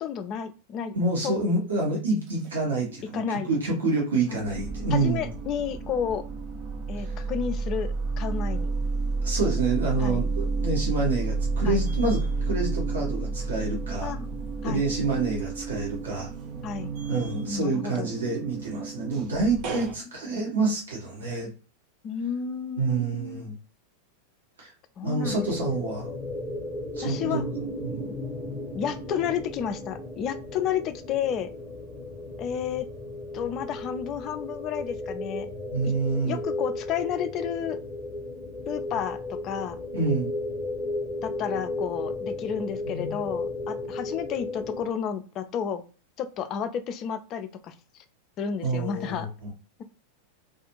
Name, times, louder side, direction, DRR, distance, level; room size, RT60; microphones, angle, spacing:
voice 1, 0.0-1.0 1.2-1.4 3.1-3.5 4.3-4.4 4.9-6.2 6.9-8.7 10.0-10.2 11.6-11.9 14.0-14.3 14.6-14.8 16.6-16.9 17.5-18.1 20.3-20.5 22.0-23.5 25.0-25.7 27.0-27.4 28.7-31.5 32.4-32.9 33.3-35.5 35.8-35.9 36.2-37.8 38.7-39.8 41.2-45.8 46.2-47.7 48.4-49.3, left 8 dB, 35° left, 10 dB, 0.3 m, -31 dB
voice 2, 0.9-5.3 7.0-7.1 9.2-12.2 12.5-14.1 14.6-16.3 17.1-21.5 22.8-23.5 24.6-24.7 25.0-26.1 26.9-27.5 27.8-28.1 35.7-36.4 39.9-40.3 42.9-43.2 48.6-49.5, right 3 dB, 70° right, -2 dB, 0.9 m, -28 dB
sound 1, 2.9-3.7 4.0-19.9, right 3 dB, 40° right, 0.4 m, -31 dB
sound 2, 25.2-44.9, left 2 dB, 5° left, 0.8 m, -34 dB
2.4 x 2.3 x 2.8 m, 0.35 s
figure-of-eight pair, 90°, 0 cm